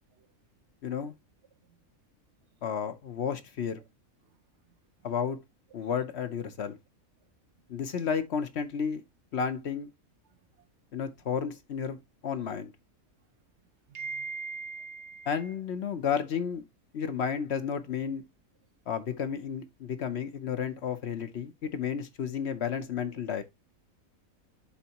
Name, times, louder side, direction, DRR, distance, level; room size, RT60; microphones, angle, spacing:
voice 1, 0.8-1.2 2.6-3.8 5.0-5.4 5.7-6.8 7.7-9.0 9.3-9.9 10.9-12.0 12.2-12.7 15.3-16.6 16.9-18.2 18.9-23.4, left 7 dB, 55° left, 0.9 m, -32 dB
voice 2, 13.9-15.5, right 4 dB, 60° right, 0.8 m, -39 dB
11.5 x 4.0 x 2.9 m
omnidirectional pair, 1.5 m